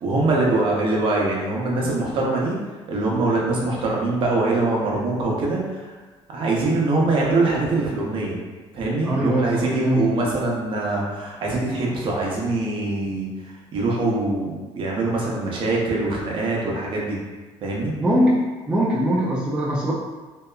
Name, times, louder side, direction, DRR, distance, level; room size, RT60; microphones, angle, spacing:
voice 1, 0.0-2.6 2.9-5.9 6.3-8.4 8.7-13.3 13.7-17.2 17.6-17.9, right 2 dB, 50° right, -3 dB, 0.6 m, -23 dB
voice 2, 9.0-10.2 18.0-18.4 18.7-19.9, equal, 10° right, -6 dB, 0.3 m, -21 dB
2.7 x 2.3 x 2.2 m, 1.3 s
cardioid pair, 145°, 12 cm